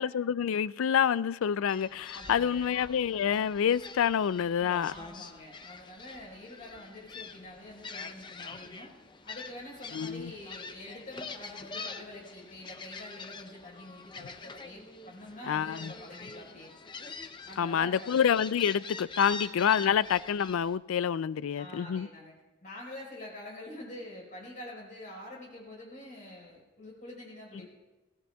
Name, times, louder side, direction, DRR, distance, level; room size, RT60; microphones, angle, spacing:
voice 1, 0.0-4.9 9.9-10.3 15.5-15.9 17.6-22.1, left 8 dB, 80° left, 0.3 m, -27 dB
Gull seagull, 1.7-20.8, left 4 dB, 20° left, 0.6 m, -45 dB
voice 2, 2.1-2.8 4.8-8.9 9.2-16.7 17.4-18.2 19.3-19.4 21.5-22.3 22.6-27.7, left 1 dB, 40° left, 4.5 m, -46 dB
21.5 x 18.0 x 2.3 m
head